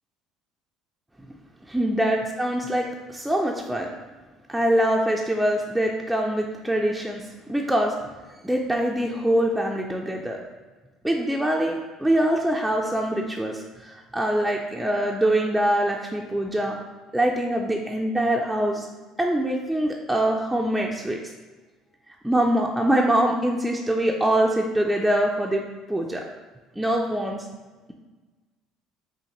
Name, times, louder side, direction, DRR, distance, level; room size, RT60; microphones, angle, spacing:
voice 1, 1.7-3.9 4.5-7.2 7.5-7.9 8.4-10.4 11.0-16.8 17.1-18.9 19.2-21.2 22.2-25.6 25.9-26.2 26.8-27.4, right 1 dB, 5° right, -1 dB, 0.3 m, -24 dB
5.4 x 2.5 x 2.9 m, 1.3 s
cardioid pair, 115°, 0 cm